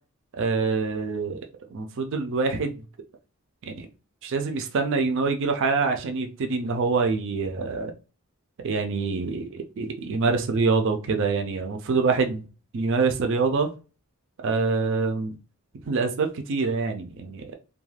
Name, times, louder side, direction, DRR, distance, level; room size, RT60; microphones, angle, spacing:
voice 1, 0.3-2.8 3.7-3.9 4.2-7.9 8.6-12.4 12.7-13.7 14.4-15.4 15.9-17.5, right 4 dB, 55° right, 0.4 m, -25 dB
2.3 x 2.1 x 3.2 m
head